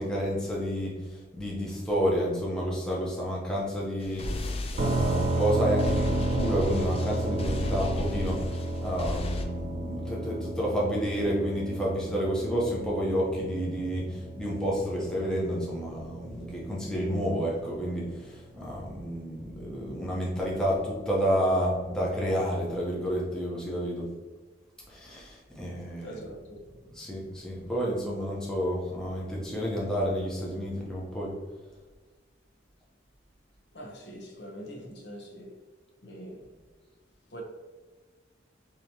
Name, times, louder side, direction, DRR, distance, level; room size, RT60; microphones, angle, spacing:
voice 1, 0.0-24.1 24.9-26.2 26.9-31.3, equal, 5° left, 0.8 m, -30 dB
sound 1, 4.0-9.4, left 1 dB, 30° left, 0.4 m, -34 dB
sound 2, 4.8-18.5, right 2 dB, 45° right, 0.4 m, -33 dB
voice 2, 26.0-26.8 33.7-35.5 36.0-36.4 37.3-37.4, equal, 65° left, 0.9 m, -43 dB
4.9 x 2.9 x 2.8 m
head